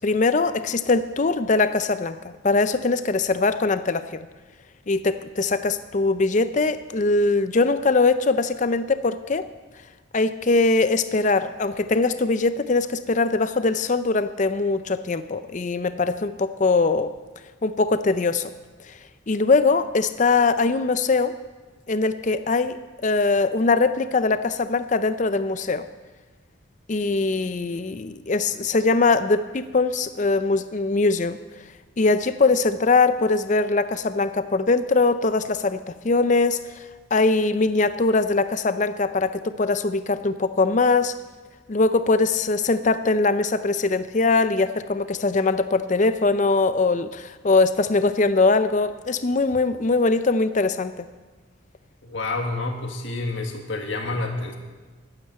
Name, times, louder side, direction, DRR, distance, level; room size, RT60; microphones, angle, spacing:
voice 1, 0.0-4.3 4.9-9.5 10.1-17.1 17.6-18.5 18.9-19.0 19.3-21.3 21.9-25.9 26.9-31.4 32.0-36.6 37.1-41.2 41.7-51.1, left 3 dB, 35° left, 12 dB, 0.5 m, -21 dB
voice 2, 52.0-54.5, left 2 dB, 65° left, 2 dB, 1.7 m, -28 dB
11.5 x 9.0 x 7.6 m, 1.3 s
head